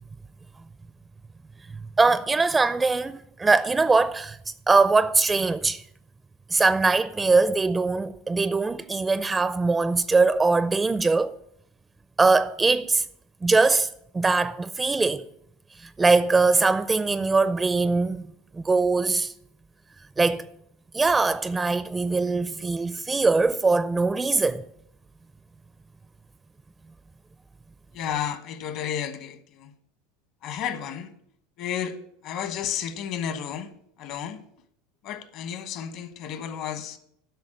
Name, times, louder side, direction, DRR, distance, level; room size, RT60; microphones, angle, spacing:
voice 1, 2.0-4.4 4.7-5.8 6.5-11.3 12.2-13.0 13.4-13.9 14.1-15.2 16.0-18.2 18.5-19.3 20.2-20.5 20.9-24.6, right 3 dB, 15° right, 0.4 m, -22 dB
voice 2, 27.9-29.7 30.4-31.1 31.6-32.0 32.2-33.7 34.0-34.4 35.0-37.0, left 9 dB, 55° left, 1.2 m, -32 dB
8.3 x 6.3 x 7.6 m
supercardioid pair, 125°, 0 cm